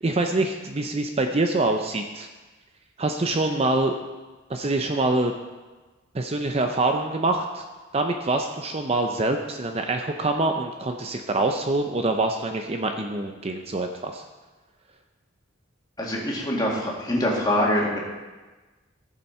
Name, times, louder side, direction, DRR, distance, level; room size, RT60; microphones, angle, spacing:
voice 1, 0.0-2.3 3.0-3.9 4.5-5.3 6.1-7.6 7.9-14.2, right 2 dB, 30° right, 4 dB, 0.6 m, -25 dB
voice 2, 16.0-18.0, left 1 dB, 20° left, -3 dB, 2.1 m, -24 dB
15.0 x 7.1 x 4.3 m, 1.2 s
head